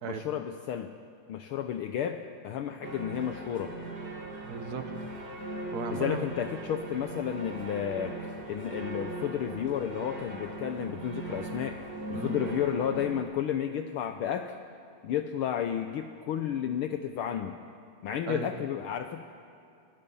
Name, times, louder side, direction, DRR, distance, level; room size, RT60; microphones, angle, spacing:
voice 1, 0.0-0.9 1.3-3.8 6.0-8.2 8.5-11.8 12.1-14.5 15.0-17.6 18.0-19.2, left 9 dB, 80° left, 7 dB, 1.2 m, -32 dB
sound 1, 2.8-13.2, right 2 dB, 30° right, 3.0 m, -39 dB
voice 2, 4.4-5.0 5.4-6.3 12.1-12.4 18.3-18.5, right 4 dB, 75° right, 7 dB, 0.8 m, -37 dB
25.5 x 21.0 x 5.5 m, 2.5 s
omnidirectional pair, 3.4 m